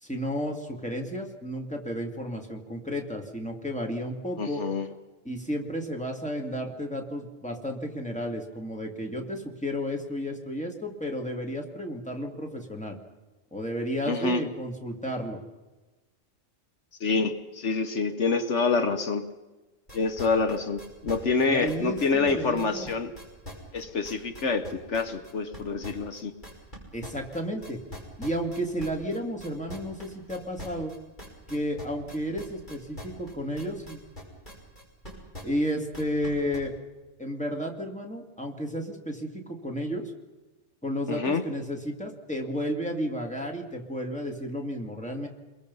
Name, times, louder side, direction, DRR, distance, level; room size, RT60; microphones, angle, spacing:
voice 1, 0.0-4.6 5.2-13.0 13.5-15.4 21.4-22.9 26.9-27.8 28.2-30.9 31.5-34.0 35.4-36.7 37.2-40.1 40.8-45.3, equal, 5° left, 1 dB, 2.6 m, -32 dB
voice 2, 4.4-4.9 14.1-14.4 17.0-19.3 19.9-23.1 23.7-26.3 41.1-41.4, left 4 dB, 70° left, 8 dB, 1.4 m, -27 dB
sound 1, 19.9-26.8 27.0-36.6, equal, 40° left, 6.0 m, -42 dB
30.0 x 22.5 x 5.6 m, 1.2 s
omnidirectional pair, 1.3 m